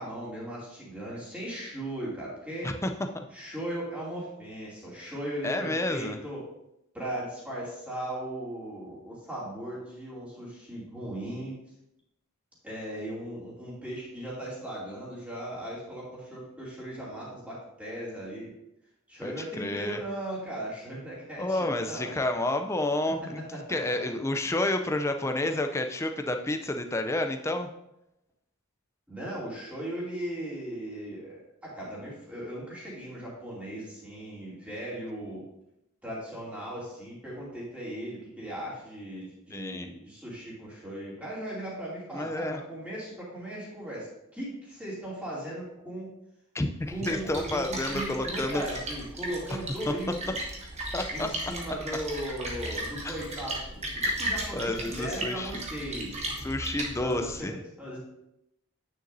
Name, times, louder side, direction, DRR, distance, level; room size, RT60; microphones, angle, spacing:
voice 1, 0.0-2.7 3.3-6.4 6.9-11.6 12.6-18.5 19.1-22.1 23.5-24.0 29.1-35.4 36.0-44.1 44.3-46.1 46.9-50.3 51.1-56.3 57.0-58.0, right 1 dB, 5° right, -7 dB, 2.6 m, -38 dB
voice 2, 5.4-6.2 19.2-20.0 21.4-23.4 23.7-27.7 39.5-39.9 42.1-42.6 46.5-48.7 50.9-51.3 53.0-53.2 54.5-55.6 56.4-57.6, left 1 dB, 10° left, 6 dB, 0.4 m, -30 dB
Splash splatter, 46.8-57.4, right 1 dB, 30° right, 1.3 m, -36 dB
9.5 x 6.6 x 2.7 m, 0.84 s
head